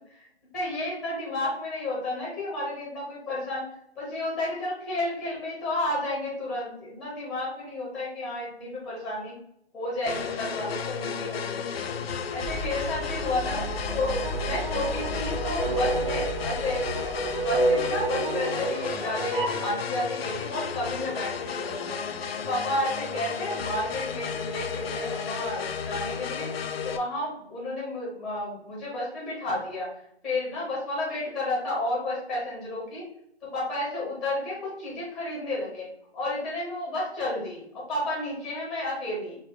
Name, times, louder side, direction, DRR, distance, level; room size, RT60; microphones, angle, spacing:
voice 1, 0.5-3.6 4.0-9.4 9.7-11.8 12.3-14.1 14.4-16.8 17.1-22.0 22.5-26.5 26.8-29.9 30.2-33.0 33.4-35.9 36.1-39.4, left 1 dB, ahead, -5 dB, 0.7 m, -31 dB
sound 1, 10.1-27.0, left 6 dB, 65° left, 0.5 m, -33 dB
sound 2, 10.2-18.3, equal, 30° right, 1.0 m, -37 dB
sound 3, 14.0-19.7, right 2 dB, 55° right, 1.0 m, -29 dB
4.9 x 2.0 x 3.6 m, 0.75 s
hypercardioid pair, 150°, 33 cm